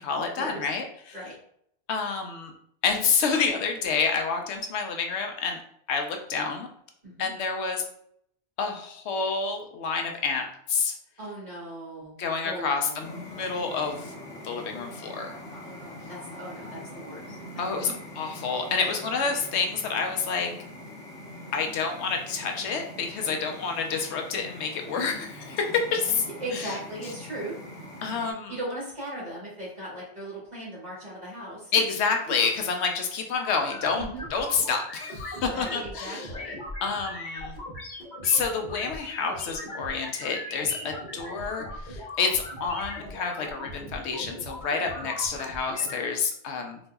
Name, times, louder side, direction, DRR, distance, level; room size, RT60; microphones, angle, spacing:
voice 1, 0.0-1.2 1.9-2.5 2.8-5.6 5.9-6.7 7.2-7.8 8.6-10.9 12.2-14.1 14.4-15.4 17.6-20.5 21.5-26.2 26.5-26.7 28.0-28.5 31.7-34.0 34.3-36.3 36.8-37.5 38.2-46.8, left 5 dB, 85° left, 4 dB, 0.9 m, -28 dB
voice 2, 11.2-12.2 12.4-13.1 15.6-17.4 18.8-18.9 23.2-23.4 25.7-27.6 28.5-31.7 33.9-34.3 35.4-36.6, right 1 dB, 40° right, -7 dB, 1.5 m, -38 dB
sound 1, 13.0-28.3, left 1 dB, 5° left, 0.9 m, -43 dB
sound 2, 33.3-45.9, left 1 dB, 50° left, 0.9 m, -39 dB
3.9 x 2.6 x 2.3 m, 0.68 s
omnidirectional pair, 1.1 m